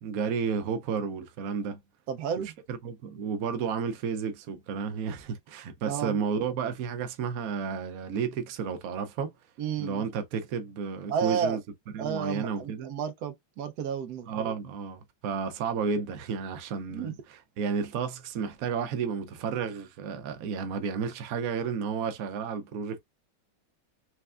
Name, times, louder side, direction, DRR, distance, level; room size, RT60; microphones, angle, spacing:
voice 1, 0.0-1.8 2.7-9.3 9.8-11.6 11.9-12.9 14.3-23.0, right 6 dB, 90° right, 0.7 m, -32 dB
voice 2, 2.1-2.5 5.9-6.2 9.6-10.0 11.1-11.6 12.0-14.5 16.9-17.2, right 7 dB, 65° right, 1.0 m, -32 dB
4.5 x 3.3 x 2.4 m
omnidirectional pair, 2.3 m